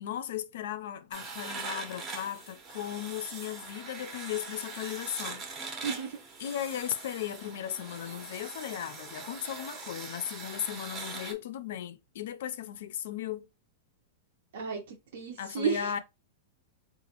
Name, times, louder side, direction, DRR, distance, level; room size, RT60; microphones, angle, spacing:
voice 1, 0.0-5.4 5.7-5.8 6.4-13.5 15.4-16.0, left 10 dB, 65° left, 0.4 m, -36 dB
sound 1, 1.1-11.3, right 4 dB, 20° right, 0.6 m, -42 dB
voice 2, 5.8-6.2 14.5-16.0, right 6 dB, 70° right, 0.7 m, -33 dB
3.9 x 2.4 x 2.8 m
supercardioid pair, 165°, 0 cm